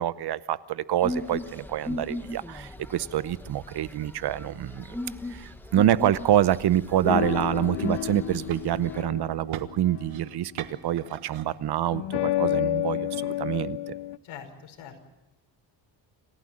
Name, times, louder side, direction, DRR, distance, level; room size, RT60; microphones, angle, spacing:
voice 1, 0.0-5.0 5.3-13.9, right 12 dB, 55° right, 16 dB, 0.8 m, -26 dB
sound 1, 1.0-9.0, left 1 dB, 5° left, 1.3 m, -37 dB
sound 2, 4.4-12.3, right 11 dB, 85° right, 1.4 m, -47 dB
sound 3, 7.1-10.3 11.9-14.2, left 14 dB, 60° left, 0.7 m, -30 dB
voice 2, 14.2-15.1, left 8 dB, 85° left, 4 dB, 5.3 m, -43 dB
28.0 x 15.5 x 7.6 m, 1.0 s
cardioid pair, 145°, 46 cm